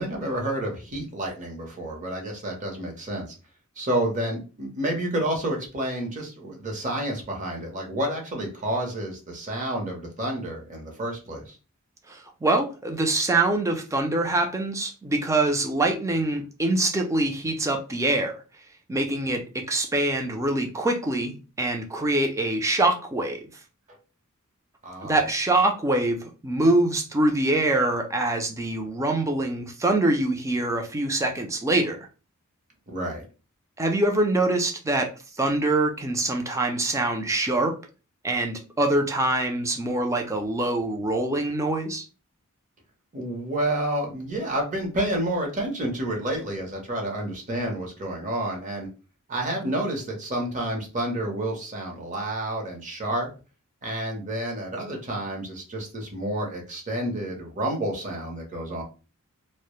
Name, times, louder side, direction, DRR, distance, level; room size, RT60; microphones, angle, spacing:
voice 1, 0.0-3.3 3.8-11.6 23.9-24.0 24.8-25.2 32.9-33.2 43.1-48.9 49.3-53.3 53.8-58.8, right 1 dB, 35° right, 0.7 m, -29 dB
voice 2, 12.1-18.4 18.9-23.4 25.0-32.1 33.8-35.1 35.4-37.7 38.2-42.0, right 2 dB, 15° right, 0.4 m, -24 dB
2.1 x 2.0 x 2.9 m
head